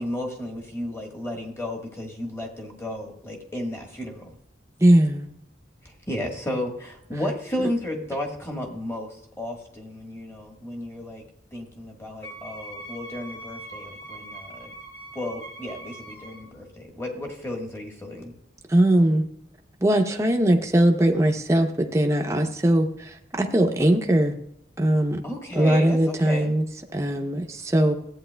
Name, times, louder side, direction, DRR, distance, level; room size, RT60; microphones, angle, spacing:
voice 1, 0.0-4.3 6.1-11.2 11.5-14.7 15.1-18.3 25.2-26.5, left 1 dB, 15° left, 1 dB, 1.3 m, -33 dB
voice 2, 4.8-5.3 18.7-19.2 19.8-24.4 24.8-25.2 25.6-26.6 26.9-27.9, right 1 dB, 15° right, 3 dB, 0.6 m, -20 dB
Wind instrument woodwind instrument, 12.2-16.5, right 1 dB, 55° left, 1.5 m, -41 dB
14.0 x 8.6 x 2.2 m, 0.75 s
head